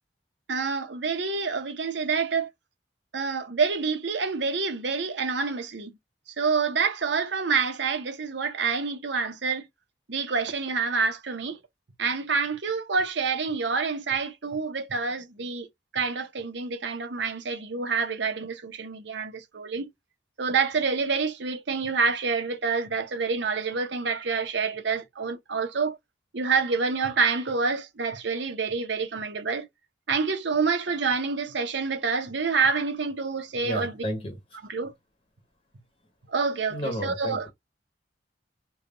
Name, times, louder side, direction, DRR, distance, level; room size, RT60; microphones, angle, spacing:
voice 1, 0.5-2.5 3.1-5.9 6.3-9.7 10.1-11.6 12.0-15.7 15.9-19.9 20.4-26.0 26.3-29.7 30.1-33.9 34.7-34.9 36.3-37.5, right 5 dB, 70° right, 0.8 m, -27 dB
voice 2, 33.6-34.6 36.7-37.5, equal, 30° left, 1.0 m, -33 dB
3.5 x 2.2 x 3.7 m
head